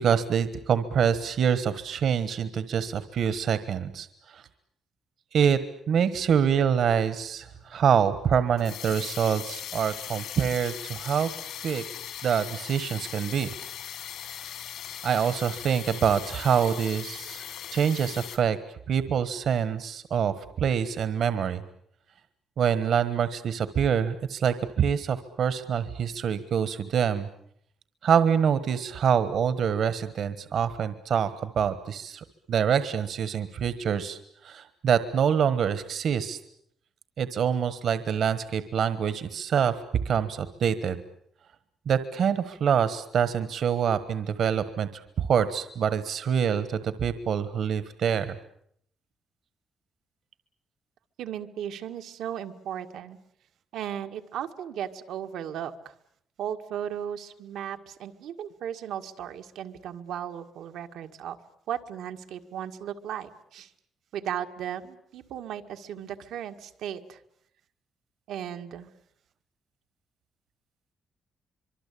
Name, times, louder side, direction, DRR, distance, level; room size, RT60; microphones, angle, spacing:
voice 1, 0.0-4.1 4.3-4.4 5.3-5.6 5.9-11.3 11.6-11.8 12.2-13.5 15.0-17.4 17.7-18.6 18.9-21.6 22.6-27.3 28.0-34.2 34.4-36.4 37.2-39.7 40.0-41.0 41.9-48.4, right 7 dB, 55° right, 13 dB, 1.3 m, -25 dB
sound 1, 6.7-18.4, left 10 dB, 75° left, 3.3 m, -39 dB
voice 2, 51.2-53.2 53.7-55.9 56.4-61.4 61.7-63.7 64.1-67.2 68.3-68.9, right 9 dB, 85° right, 6 dB, 1.9 m, -36 dB
25.0 x 24.0 x 8.5 m, 0.70 s
cardioid pair, 155°, 0 cm